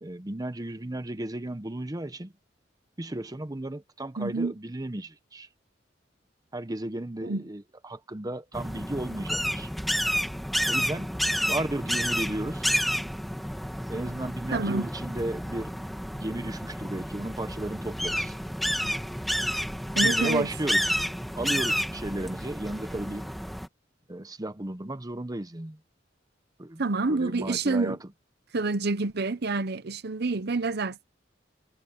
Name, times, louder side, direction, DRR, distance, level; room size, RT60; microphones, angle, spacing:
voice 1, 0.0-2.3 3.0-5.5 6.5-9.7 10.7-11.2 11.5-12.7 13.9-15.9 16.2-18.3 20.0-20.9 21.3-23.3 24.1-25.8 26.6-26.8 27.1-28.0, right 1 dB, 20° right, 0.8 m, -34 dB
voice 2, 4.2-4.5 7.2-7.4 14.5-14.9 19.9-20.5 26.8-28.0 28.5-31.0, right 3 dB, 60° right, 0.9 m, -28 dB
sound 1, 8.5-23.7, equal, ahead, 2.4 m, -30 dB
head